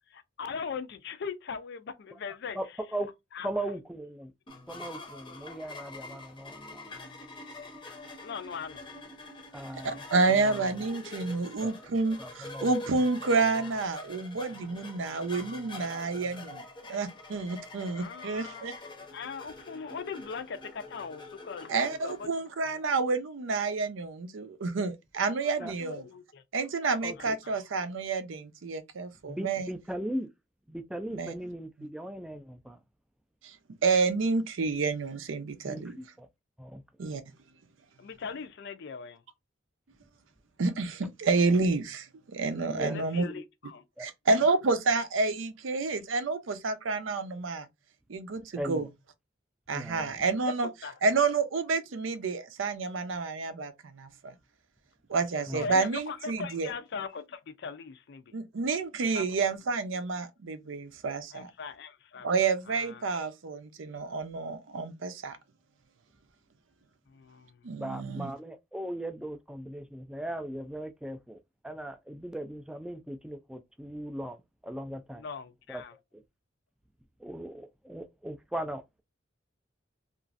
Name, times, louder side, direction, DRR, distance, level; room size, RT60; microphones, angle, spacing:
voice 1, 0.0-2.6 3.3-3.5 8.2-8.9 17.9-18.6 19.1-22.3 22.7-22.8 25.2-26.4 27.2-27.5 38.0-39.2 42.8-43.8 50.6-51.0 55.1-55.2 55.5-58.3 59.1-59.2 61.3-62.3 62.7-63.0 67.1-67.7 75.2-75.9, left 5 dB, 60° left, 0.4 m, -40 dB
voice 2, 3.4-4.3 4.7-7.0 9.5-10.7 11.6-11.7 12.2-12.7 25.6-25.7 27.0-27.4 29.3-30.3 30.7-32.8 35.6-36.3 36.6-36.8 42.7-43.4 48.5-48.9 49.7-50.3 55.5-55.7 67.8-71.4 71.6-75.3 75.7-75.8 76.1-76.2 77.2-79.0, right 1 dB, 5° right, 0.3 m, -38 dB
sound 1, 4.5-22.3, left 2 dB, 25° left, 0.7 m, -45 dB
voice 3, 9.8-18.7 21.7-26.0 26.5-29.7 31.1-31.3 33.4-33.6 33.8-36.0 37.0-37.2 40.6-43.2 44.3-47.7 48.1-48.9 49.7-50.7 51.0-54.3 55.1-56.7 58.3-61.5 62.2-65.4 67.6-68.3, right 4 dB, 80° right, 0.5 m, -29 dB
3.0 x 2.5 x 2.4 m
head